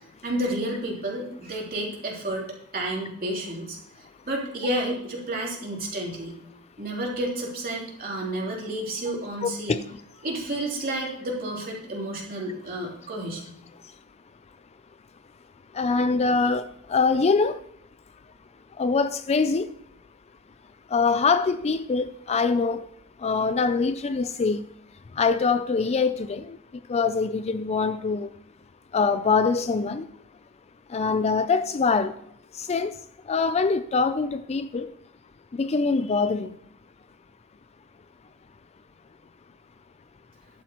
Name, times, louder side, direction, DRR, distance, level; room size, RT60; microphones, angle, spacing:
voice 1, 0.2-2.4 2.7-3.8 4.3-6.3 6.8-9.8 10.2-13.4, right 1 dB, 40° right, 3.2 m, -30 dB
voice 2, 9.4-10.0 15.7-17.6 18.8-19.7 20.9-22.9 23.2-24.7 25.1-26.6 26.9-28.3 28.9-30.1 30.9-32.2 32.5-33.0 33.3-34.9 35.5-36.6, left 4 dB, 30° left, 0.4 m, -24 dB
13.5 x 11.0 x 3.0 m
head